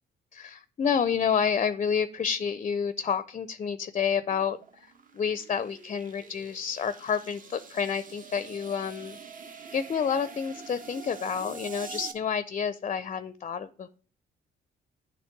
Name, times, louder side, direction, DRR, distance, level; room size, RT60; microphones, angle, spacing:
voice 1, 0.3-9.2 9.7-13.9, left 7 dB, 35° left, 0.5 m, -29 dB
sound 1, 4.1-12.1, right 5 dB, 45° right, 1.0 m, -45 dB
8.9 x 3.2 x 5.9 m
cardioid pair, 90°, 20 cm